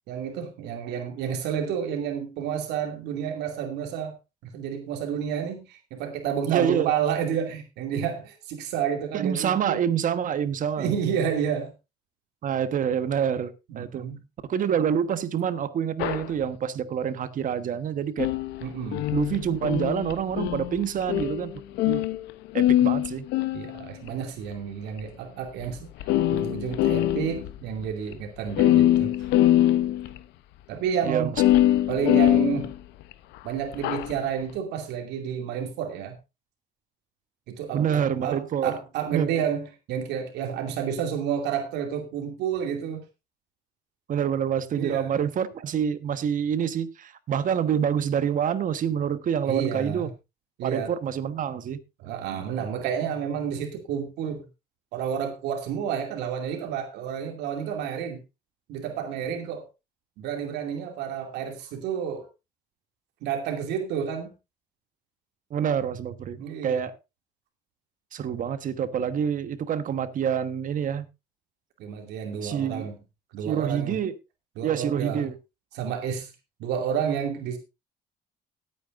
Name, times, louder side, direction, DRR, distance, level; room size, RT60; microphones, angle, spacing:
voice 1, 0.1-4.1 4.4-9.8 10.8-11.7 13.7-14.2 18.6-19.0 23.5-25.9 26.3-29.1 30.7-31.3 31.9-32.7 33.4-36.2 37.5-43.0 44.7-45.2 49.5-50.1 50.6-50.9 52.0-54.4 54.9-58.2 58.7-59.7 60.2-62.3 63.2-64.3 66.4-66.9 71.8-73.0 73.3-74.0 74.6-75.3 75.7-76.3 76.6-77.6, right 8 dB, 85° right, 2.6 m, -30 dB
voice 2, 6.5-6.9 9.1-10.9 12.4-14.0 14.5-18.3 19.1-21.5 21.9-22.0 22.5-23.3 31.0-31.3 37.7-38.8 39.1-39.4 44.1-50.1 50.6-51.8 65.5-67.0 68.1-71.1 72.4-72.9 73.4-74.1 74.6-75.4, right 8 dB, 50° right, 1.3 m, -27 dB
sound 1, 16.0-16.3 18.2-22.3 22.6-24.1 25.0-25.1 25.6-25.7 26.0-27.5 27.8-27.9 28.1-28.2 28.5-30.2 31.4-33.1 33.7-34.1, left 13 dB, 90° left, 0.8 m, -23 dB
18.5 x 9.1 x 2.5 m
cardioid pair, 110°, 17 cm